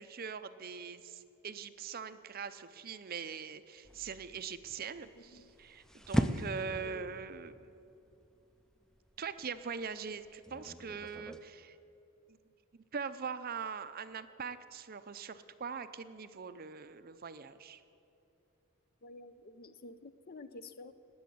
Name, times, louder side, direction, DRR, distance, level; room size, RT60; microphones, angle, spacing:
voice 1, 0.0-7.7 9.2-11.8 12.9-17.8, right 6 dB, 45° right, 12 dB, 0.6 m, -42 dB
sound 1, 3.8-11.4, equal, 5° left, 0.5 m, -39 dB
voice 2, 5.1-5.5 6.8-7.2 19.0-20.9, left 2 dB, 45° left, 12 dB, 0.6 m, -50 dB
19.0 x 7.1 x 9.3 m, 2.9 s
head